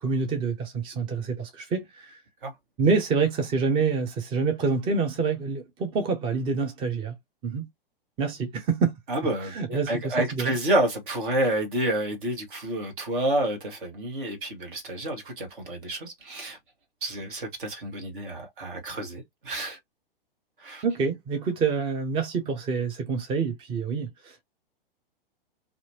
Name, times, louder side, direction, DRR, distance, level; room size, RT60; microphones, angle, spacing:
voice 1, 0.0-2.2 2.8-7.2 7.4-7.7 8.2-8.9 9.4-10.5 20.8-24.4, right 5 dB, 20° right, 0.5 m, -27 dB
voice 2, 9.1-16.6 17.0-19.8 20.6-20.8, right 1 dB, 60° right, 1.5 m, -29 dB
2.8 x 2.5 x 2.7 m
figure-of-eight pair, 105°, 29 cm